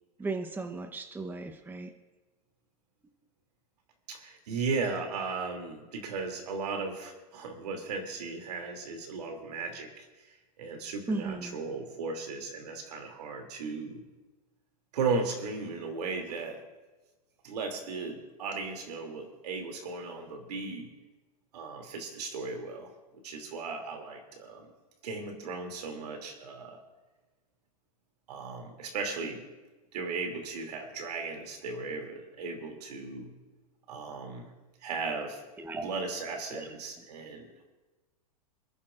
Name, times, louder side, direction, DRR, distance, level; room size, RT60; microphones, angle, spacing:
voice 1, 0.2-1.9 11.1-11.6 35.6-35.9 36.5-36.7, right 3 dB, 10° right, 5 dB, 1.0 m, -35 dB
voice 2, 4.1-10.0 10.6-14.0 14.9-16.6 17.4-20.9 21.5-22.9 23.2-24.7 25.0-26.8 28.3-29.4 29.9-33.3 33.9-34.5 34.8-35.4 35.8-37.5, right 4 dB, 70° right, 3 dB, 2.9 m, -36 dB
27.5 x 10.5 x 2.6 m, 1.2 s
hypercardioid pair, 115°, 21 cm